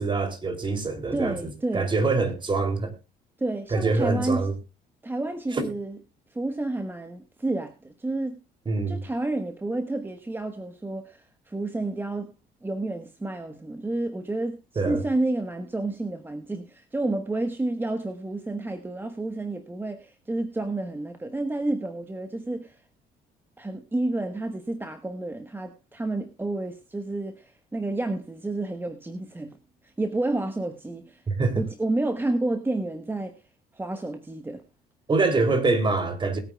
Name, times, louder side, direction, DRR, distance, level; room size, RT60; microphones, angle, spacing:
voice 1, 0.0-2.9 3.7-4.5 5.5-5.7 8.7-9.0 14.8-15.0 31.3-31.6 35.1-36.4, right 3 dB, 30° right, 2.9 m, -25 dB
voice 2, 1.1-1.9 3.4-4.5 5.0-6.0 6.3-8.4 8.9-12.3 12.6-14.6 14.8-22.8 23.6-29.6 29.8-31.2 31.5-33.4 33.7-34.6, right 2 dB, 10° right, 1.2 m, -30 dB
21.0 x 9.0 x 2.3 m
cardioid pair, 110°, 17 cm